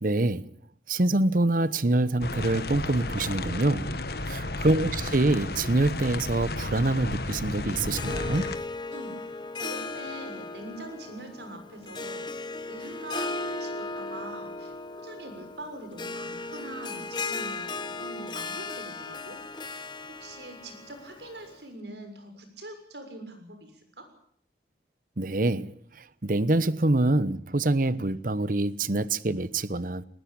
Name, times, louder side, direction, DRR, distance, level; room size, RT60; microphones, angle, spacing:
voice 1, 0.0-0.5 0.9-3.9 4.3-8.5 25.2-30.1, right 2 dB, 50° right, 1.0 m, -25 dB
sound 1, 2.2-8.6, left 2 dB, 60° left, 1.6 m, -33 dB
voice 2, 4.1-4.5 8.9-19.4 19.6-24.1, right 1 dB, 75° right, 6.6 m, -43 dB
Harp, 7.9-21.6, left 3 dB, 25° left, 1.3 m, -37 dB
20.5 x 20.0 x 8.8 m
head